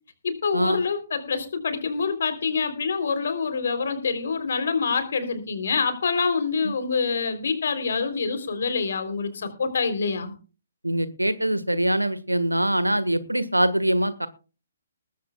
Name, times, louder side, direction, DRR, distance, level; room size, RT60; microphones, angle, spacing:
voice 1, 0.2-10.3, left 5 dB, 55° left, 10 dB, 3.4 m, -26 dB
voice 2, 10.8-14.3, right 1 dB, 90° right, 15 dB, 1.6 m, -23 dB
19.5 x 14.5 x 2.3 m, 0.34 s
figure-of-eight pair, 130°, 0 cm